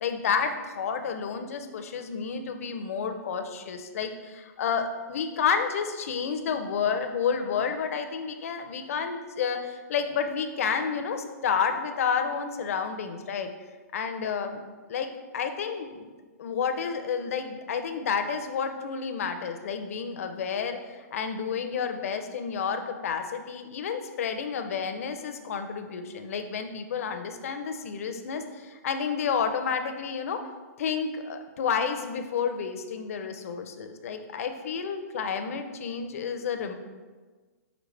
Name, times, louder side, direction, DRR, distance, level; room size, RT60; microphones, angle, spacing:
voice 1, 0.0-13.5 13.9-14.6 14.9-15.1 15.3-16.1 16.4-30.4 30.8-36.7, left 6 dB, 55° left, 7 dB, 0.5 m, -30 dB
5.1 x 3.2 x 3.2 m, 1.4 s
hypercardioid pair, 165°, 9 cm